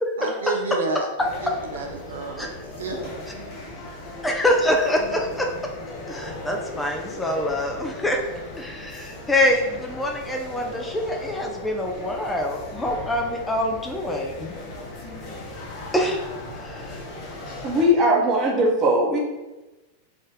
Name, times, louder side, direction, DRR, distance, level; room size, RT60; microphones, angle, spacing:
voice 1, 0.2-2.5 2.8-3.0, right 3 dB, 65° right, 2 dB, 0.5 m, -30 dB
sound 1, 1.2-17.9, left 2 dB, 35° left, 0.8 m, -38 dB
voice 2, 4.2-5.5 6.1-8.2 8.6-14.5 15.9-16.2 16.6-17.0, left 1 dB, 10° left, 1 dB, 0.4 m, -25 dB
voice 3, 17.6-19.2, equal, 30° right, -1 dB, 1.0 m, -19 dB
3.6 x 2.5 x 3.6 m, 1.1 s
figure-of-eight pair, 90°, 0 cm